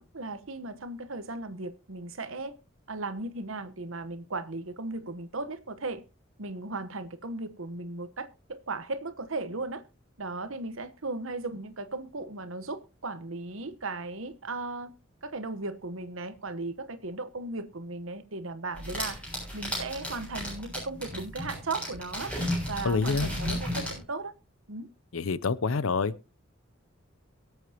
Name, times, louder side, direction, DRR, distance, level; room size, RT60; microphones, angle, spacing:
voice 1, 0.0-2.6 2.9-6.0 6.4-9.8 10.2-14.9 15.2-19.2 19.5-22.3 22.7-24.3 24.7-24.9, right 3 dB, 80° right, 1.2 m, -36 dB
sound 1, 18.7-24.0, left 1 dB, 5° left, 7.0 m, -34 dB
voice 2, 22.8-23.3 25.1-26.1, left 4 dB, 85° left, 0.6 m, -27 dB
23.0 x 8.0 x 2.9 m
head